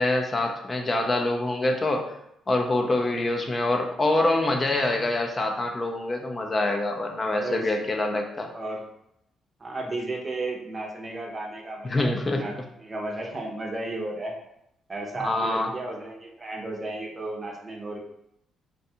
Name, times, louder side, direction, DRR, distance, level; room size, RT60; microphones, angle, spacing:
voice 1, 0.0-2.2 2.5-8.5 11.8-12.5 15.2-15.7, left 2 dB, 30° left, 3 dB, 0.3 m, -25 dB
voice 2, 7.3-7.7 8.5-8.9 9.6-14.4 14.9-18.0, right 2 dB, 30° right, 0 dB, 0.6 m, -34 dB
2.5 x 2.2 x 2.7 m, 0.78 s
cardioid pair, 90°, 0 cm